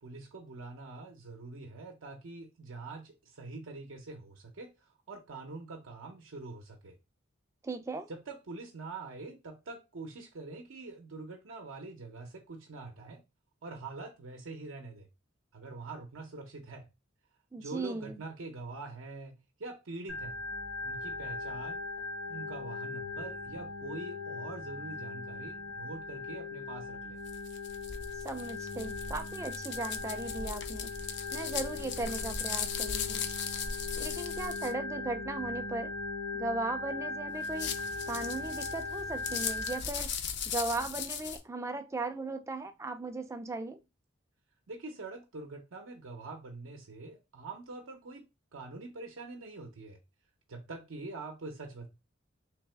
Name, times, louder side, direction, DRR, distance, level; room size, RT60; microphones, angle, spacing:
voice 1, 0.0-7.0 8.1-13.2 13.6-15.1 15.5-16.9 17.6-20.4 20.8-21.8 22.3-27.2 44.7-48.3 48.5-50.0 50.5-51.9, right 3 dB, 80° right, 0.6 m, -44 dB
voice 2, 7.6-8.1 17.5-18.2 28.2-30.9 31.3-33.2 34.0-35.9 36.3-37.7 38.1-40.1 40.4-43.8, right 3 dB, 15° right, 0.3 m, -37 dB
Organ, 20.1-39.8, left 3 dB, 75° left, 1.2 m, -39 dB
sound 1, 27.3-34.7 37.4-41.4, left 7 dB, 55° left, 0.5 m, -38 dB
3.3 x 2.8 x 3.2 m
head